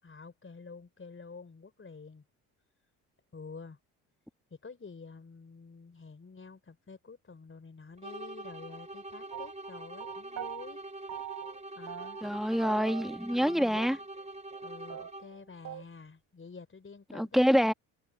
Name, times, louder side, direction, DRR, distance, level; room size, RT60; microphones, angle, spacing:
voice 1, 0.0-2.2 3.3-3.8 4.5-10.8 11.7-12.2 13.3-13.8 14.6-17.7, left 4 dB, 30° left, 4.1 m, -49 dB
sound 1, 8.0-15.5, right 2 dB, 15° right, 4.0 m, -45 dB
sound 2, 9.3-10.7 11.1-11.6 11.9-12.4 12.6-13.5 13.8-13.9 14.2-14.3 14.5-14.6 14.9-15.9, right 11 dB, 40° right, 0.8 m, -42 dB
voice 2, 12.2-14.0 17.1-17.7, equal, ahead, 1.6 m, -26 dB
hypercardioid pair, 55°, 42 cm